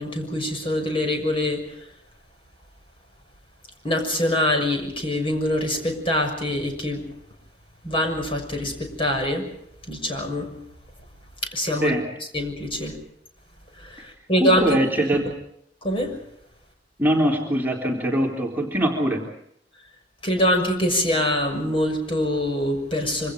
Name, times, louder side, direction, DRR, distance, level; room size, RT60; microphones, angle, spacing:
voice 1, 0.0-1.6 3.8-7.0 7.8-9.5 9.9-10.5 11.4-11.9 12.3-12.9 13.8-14.7 15.8-16.2 20.2-23.3, left 1 dB, 30° left, 3 dB, 6.5 m, -24 dB
voice 2, 14.4-15.3 17.0-19.3, right 1 dB, 10° right, -1 dB, 3.7 m, -22 dB
27.0 x 25.5 x 5.2 m, 0.73 s
head